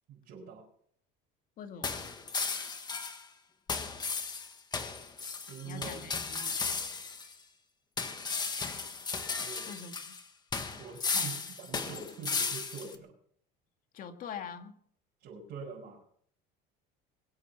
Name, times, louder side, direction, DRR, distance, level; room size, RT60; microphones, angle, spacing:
voice 1, 0.1-0.7 5.5-6.0 9.4-9.7 10.7-13.1 15.2-16.0, right 5 dB, 55° right, -4 dB, 5.9 m, -44 dB
voice 2, 1.6-2.0 5.6-6.8 9.7-10.1 11.1-11.3 13.9-14.8, left 7 dB, 45° left, 6 dB, 2.1 m, -44 dB
sound 1, 1.8-3.2 3.7-7.3 8.0-10.2 10.5-12.9, left 4 dB, 20° left, 1.7 m, -35 dB
23.0 x 8.7 x 5.8 m, 0.63 s
cardioid pair, 140°, 20 cm